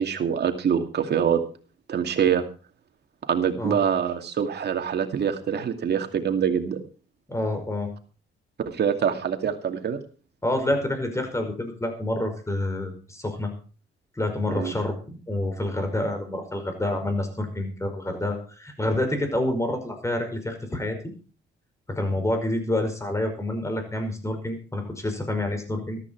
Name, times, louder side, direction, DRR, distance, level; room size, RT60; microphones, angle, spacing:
voice 1, 0.0-1.4 1.9-2.4 3.3-6.8 8.7-10.0 14.5-14.7, right 8 dB, 55° right, 6 dB, 2.4 m, -25 dB
voice 2, 7.3-7.9 10.4-13.5 14.2-21.0 21.9-26.0, left 1 dB, 15° left, 6 dB, 5.4 m, -28 dB
14.0 x 13.5 x 4.7 m, 0.38 s
cardioid pair, 90°, 20 cm